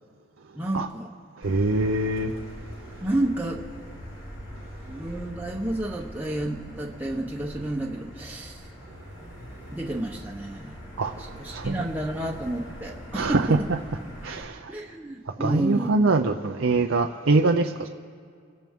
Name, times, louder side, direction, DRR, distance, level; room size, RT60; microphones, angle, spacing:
voice 1, 0.5-1.1 3.0-3.6 4.9-8.6 9.7-10.8 11.4-13.7 14.7-16.1, right 1 dB, 10° right, 1.0 m, -30 dB
Motor vehicle (road), 1.4-14.4, equal, 70° left, 2.8 m, -42 dB
voice 2, 1.4-2.3 11.0-11.1 11.5-11.7 13.1-13.8 14.2-14.7 15.4-17.9, right 3 dB, 80° right, 0.7 m, -23 dB
27.5 x 13.5 x 3.7 m
head